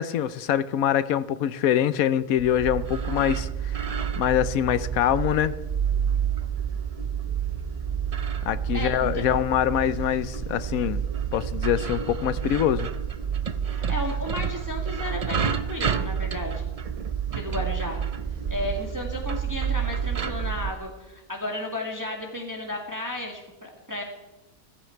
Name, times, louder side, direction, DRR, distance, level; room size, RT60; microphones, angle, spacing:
voice 1, 0.0-5.5 8.4-11.0 11.3-12.9, left 10 dB, 75° left, 15 dB, 1.1 m, -24 dB
sound 1, 2.4-20.7, right 7 dB, 55° right, 0.4 m, -29 dB
voice 2, 8.7-9.2 13.7-16.7 17.3-18.0 18.5-24.0, left 1 dB, 15° right, 1 dB, 1.9 m, -33 dB
15.5 x 15.0 x 4.6 m, 0.97 s
omnidirectional pair, 1.5 m